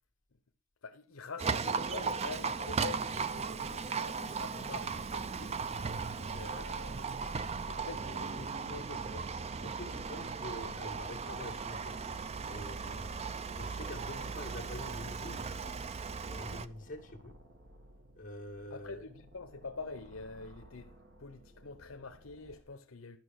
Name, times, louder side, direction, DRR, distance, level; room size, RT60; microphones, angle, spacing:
voice 1, 0.8-7.1 7.7-9.3 18.7-20.9 21.2-23.2, left 4 dB, 75° left, 0.8 m, -46 dB
Livestock farm animals working animals, 1.4-16.7, right 5 dB, 30° right, 0.4 m, -37 dB
sound 1, 2.7-22.6, right 1 dB, 50° right, 1.4 m, -58 dB
voice 2, 7.8-8.6 9.6-12.0 12.4-13.1 13.5-15.5 16.3-17.4 18.1-19.1, left 1 dB, 40° left, 2.1 m, -46 dB
12.0 x 5.6 x 6.3 m
head